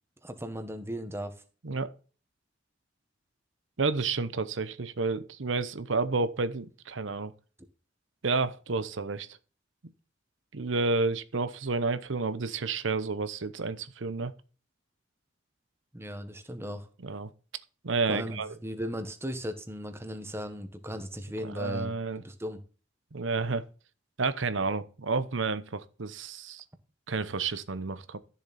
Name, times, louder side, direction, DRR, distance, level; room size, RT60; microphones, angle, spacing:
voice 1, 0.2-1.3 15.9-16.9 18.1-22.6, equal, 15° right, 1.3 m, -37 dB
voice 2, 3.8-7.3 8.2-9.3 10.5-14.3 17.0-17.3 17.8-18.5 21.4-22.2 23.1-23.6 24.2-26.6 27.1-28.2, right 4 dB, 75° right, 0.9 m, -30 dB
13.0 x 7.2 x 4.2 m
head